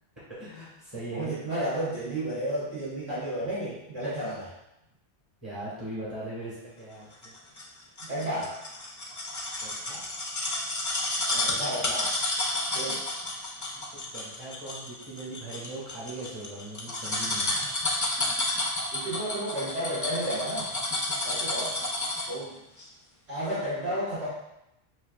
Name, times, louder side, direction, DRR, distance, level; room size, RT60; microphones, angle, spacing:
voice 1, 0.3-1.3 5.4-7.3 9.6-10.1 13.7-17.7, right 2 dB, 25° right, -10 dB, 1.4 m, -40 dB
voice 2, 1.1-4.5 8.0-8.6 11.3-12.1 12.7-13.0 18.9-20.7 21.2-21.8 22.3-22.6 23.3-24.3, right 1 dB, 65° right, -11 dB, 1.5 m, -32 dB
sound 1, 7.2-22.4 22.8-22.9, left 2 dB, 30° left, 0.3 m, -31 dB
5.7 x 2.8 x 2.3 m, 0.86 s
omnidirectional pair, 1.2 m